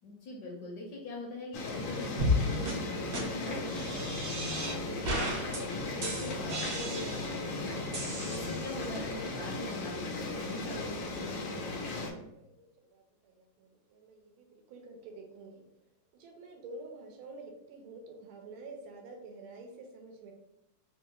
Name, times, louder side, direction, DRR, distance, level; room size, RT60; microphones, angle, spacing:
voice 1, 0.0-4.5 4.9-7.9 8.3-11.4, left 2 dB, 70° left, -1 dB, 1.0 m, -42 dB
sound 1, 1.5-12.1, left 2 dB, 90° left, 1.4 m, -37 dB
sound 2, 1.7-9.6, left 2 dB, 40° left, 0.5 m, -45 dB
sound 3, 2.2-2.4 2.7-2.8 3.1-3.2 3.7-4.8 5.0-5.6 6.0-7.4 7.9-8.9, left 1 dB, 65° right, 1.4 m, -33 dB
voice 2, 12.1-15.6 16.1-20.3, right 3 dB, 90° right, 3 dB, 1.5 m, -49 dB
3.7 x 2.3 x 2.8 m, 0.85 s
omnidirectional pair, 2.2 m